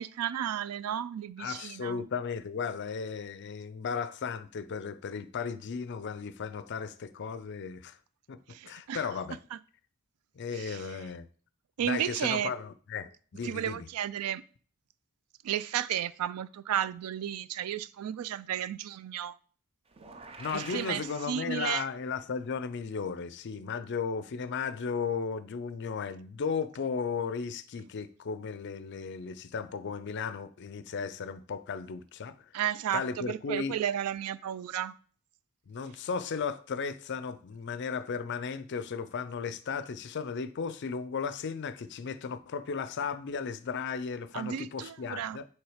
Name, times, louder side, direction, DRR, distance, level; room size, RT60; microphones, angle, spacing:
voice 1, 0.0-2.0 8.5-9.0 9.5-9.6 10.5-11.0 11.8-12.5 13.4-14.4 15.4-19.4 20.5-21.9 32.5-34.9 44.3-45.4, right 10 dB, 85° right, 0.3 m, -33 dB
voice 2, 1.4-8.0 8.3-9.4 10.4-11.3 11.8-13.9 20.4-32.4 32.9-33.7 35.7-45.4, left 5 dB, 50° left, 0.4 m, -35 dB
sound 1, 19.9-22.1, right 4 dB, 25° right, 0.5 m, -47 dB
6.1 x 3.3 x 4.9 m
head